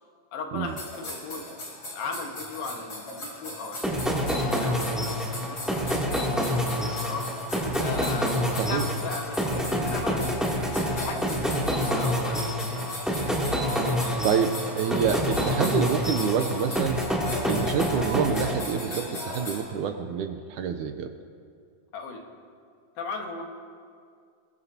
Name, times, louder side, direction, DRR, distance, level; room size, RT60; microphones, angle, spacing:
voice 1, 0.3-1.5 1.9-4.2 4.5-5.1 5.3-7.3 7.8-8.4 8.6-10.2 10.9-12.9 21.9-22.3 23.0-23.4, left 4 dB, 85° left, 2 dB, 3.3 m, -37 dB
sound 1, 0.7-19.6, left 1 dB, 35° left, 5.1 m, -38 dB
sound 2, 3.8-19.1, equal, ahead, 1.9 m, -27 dB
voice 2, 8.5-8.9 14.2-17.0 17.5-21.1, right 7 dB, 75° right, 6 dB, 1.9 m, -27 dB
22.0 x 22.0 x 2.8 m, 2.2 s
omnidirectional pair, 4.0 m